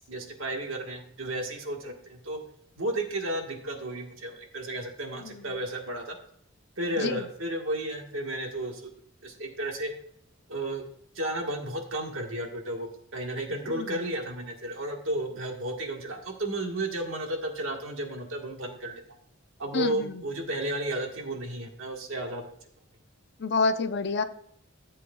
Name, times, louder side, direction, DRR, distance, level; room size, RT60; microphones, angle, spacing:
voice 1, 0.1-2.4 2.8-6.2 6.8-8.9 9.2-9.9 10.5-10.8 11.1-19.0 19.6-22.6, right 1 dB, 70° right, 2 dB, 1.5 m, -33 dB
voice 2, 19.7-20.1 23.4-24.2, left 4 dB, 55° left, 10 dB, 0.6 m, -27 dB
14.0 x 7.6 x 2.3 m, 0.69 s
head